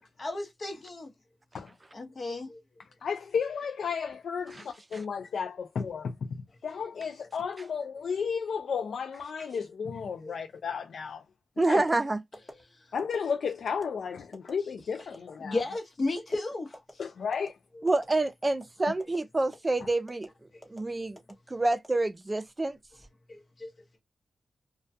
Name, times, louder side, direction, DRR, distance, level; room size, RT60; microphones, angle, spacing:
voice 1, 0.2-1.1 1.9-2.6 10.2-10.4 15.4-16.8 23.3-23.7, left 2 dB, 45° left, 0.9 m, -34 dB
voice 2, 3.0-11.2 11.6-11.8 12.9-15.6 17.0-17.5 18.8-18.9, left 6 dB, 75° left, 0.3 m, -33 dB
voice 3, 11.6-12.2 17.8-20.3 20.7-21.2 21.5-22.8, right 2 dB, 25° right, 0.4 m, -27 dB
sound 1, 11.7-12.0 12.3-12.5 13.0-13.2 13.7-13.8 14.3-14.5 15.0-15.2 15.6-15.8 16.2-16.4 16.7-16.9 17.3-17.5 17.9-18.1 18.5-18.7 19.0-19.2 19.5-19.7 20.1-20.3 20.6-20.8 21.2-21.3 21.7-22.4 22.8-23.1, equal, 15° left, 0.9 m, -46 dB
2.2 x 2.2 x 2.6 m
cardioid pair, 70°, 0 cm